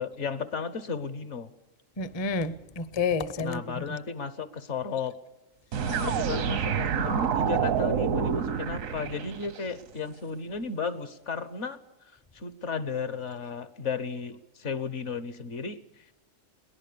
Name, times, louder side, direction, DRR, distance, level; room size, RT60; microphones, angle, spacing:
voice 1, 0.0-1.5 3.4-5.2 5.8-11.8 12.3-16.0, left 5 dB, 65° left, 1.4 m, -34 dB
voice 2, 2.0-3.8, left 4 dB, 25° left, 0.6 m, -30 dB
sound 1, 5.7-9.7, right 7 dB, 85° right, 1.3 m, -28 dB
22.5 x 18.0 x 6.9 m
omnidirectional pair, 1.4 m